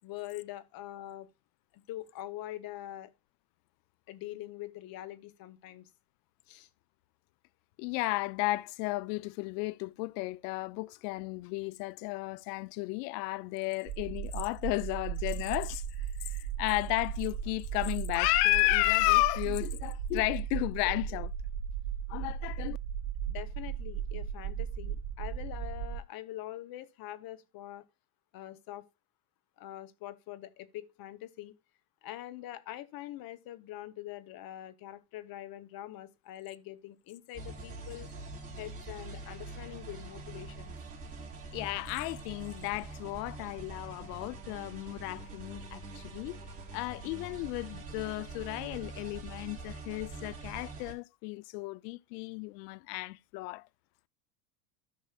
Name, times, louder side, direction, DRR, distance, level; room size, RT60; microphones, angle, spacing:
voice 1, 0.0-1.3 1.7-3.1 4.1-5.9 6.5-6.7 23.3-27.8 28.3-28.9 29.6-31.6 32.0-38.1 38.6-40.7, left 14 dB, 45° left, 0.9 m, -44 dB
voice 2, 7.8-21.3 22.1-22.8 41.5-46.4 46.7-53.7, left 22 dB, 70° left, 0.6 m, -33 dB
sound 1, 13.8-26.0, right 8 dB, 55° right, 2.6 m, -36 dB
sound 2, 37.3-50.9, right 3 dB, 15° right, 3.6 m, -44 dB
14.0 x 6.1 x 2.3 m
supercardioid pair, 120°, 50 cm